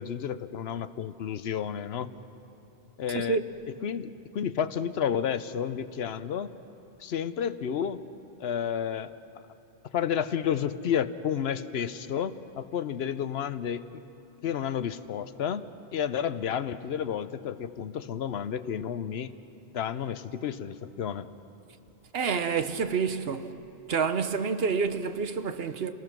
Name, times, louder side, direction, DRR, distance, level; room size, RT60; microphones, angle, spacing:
voice 1, 0.0-2.1 3.0-3.4 3.8-6.5 7.0-8.0 8.4-9.1 9.9-13.9 14.4-19.3 19.7-21.3, left 8 dB, 70° left, 0.9 m, -31 dB
voice 2, 3.1-3.4 22.1-23.5 23.9-25.9, right 5 dB, 65° right, 1.1 m, -28 dB
28.5 x 19.5 x 6.1 m
omnidirectional pair, 1.1 m